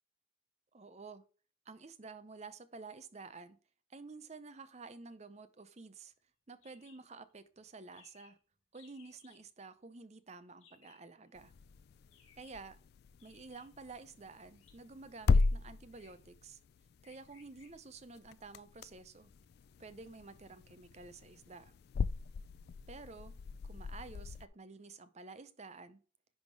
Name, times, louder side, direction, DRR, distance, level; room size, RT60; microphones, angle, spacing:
voice 1, 0.7-1.2 1.7-3.6 3.9-6.1 6.5-8.4 8.7-11.5 12.4-12.8 13.2-16.6 17.0-19.3 19.8-21.7 22.9-23.3 23.6-26.0, right 4 dB, 35° right, 0.7 m, -51 dB
sound 1, 6.6-7.0 7.3-7.4 7.6-7.7 7.9-8.4 8.7-9.4 10.6-11.1 12.1-12.6 13.2-13.9 14.5-14.7 15.3-15.5 15.9-16.3 17.0-17.7, left 5 dB, 80° left, 3.4 m, -64 dB
sound 2, 11.3-24.5, left 4 dB, 50° left, 0.3 m, -38 dB
10.5 x 3.6 x 4.6 m
head